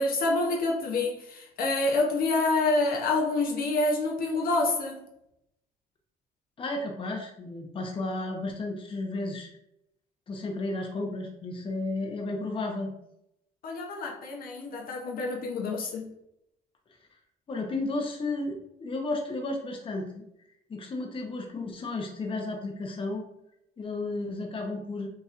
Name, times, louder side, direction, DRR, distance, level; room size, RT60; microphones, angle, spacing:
voice 1, 0.0-5.0 13.6-16.1, left 2 dB, 60° left, -1 dB, 0.8 m, -27 dB
voice 2, 6.6-9.5 10.3-12.9 17.5-20.2 20.7-23.2 23.8-25.1, left 2 dB, 30° left, 1 dB, 0.9 m, -33 dB
5.5 x 3.0 x 2.5 m, 0.79 s
cardioid pair, 110°, 17 cm